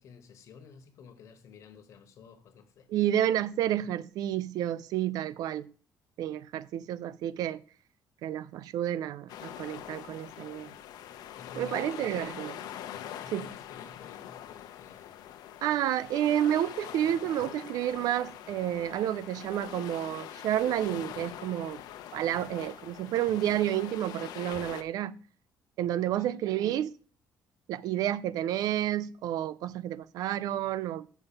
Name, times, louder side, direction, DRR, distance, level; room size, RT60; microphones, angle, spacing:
voice 1, 0.0-2.9 11.4-12.3 13.2-15.2 26.2-26.4, left 6 dB, 50° left, 1.2 m, -51 dB
voice 2, 2.9-5.7 6.2-7.6 8.2-10.7 11.6-12.5 13.3-13.4 15.6-21.8 22.1-25.1 25.8-26.9 27.7-31.1, right 11 dB, 65° right, 0.4 m, -30 dB
sound 1, 9.3-24.8, left 11 dB, 75° left, 0.8 m, -43 dB
7.1 x 5.4 x 7.0 m
cardioid pair, 180°, 7 cm